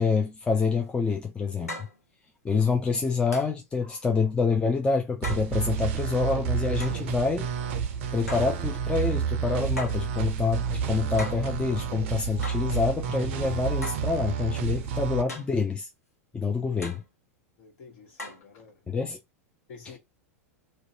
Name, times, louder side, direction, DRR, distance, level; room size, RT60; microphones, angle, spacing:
voice 1, 0.0-1.9 2.4-7.5 8.1-15.9 16.3-17.0 18.9-19.2, left 4 dB, 10° left, 0.5 m, -27 dB
sound 1, 0.8-0.9 1.7-2.0 3.3-3.6 5.2-5.5 6.8-7.0 8.3-8.6 9.8-10.1 11.2-11.5 12.4-12.7 13.8-14.1 15.3-15.6 16.8-17.1 18.2-18.5, left 1 dB, 80° left, 0.7 m, -38 dB
sound 2, 5.2-15.2, right 7 dB, 50° right, 0.5 m, -30 dB
voice 2, 7.9-8.3 17.6-19.0 19.7-20.0, left 5 dB, 50° left, 1.1 m, -50 dB
2.6 x 2.1 x 2.7 m
figure-of-eight pair, 90°, 8 cm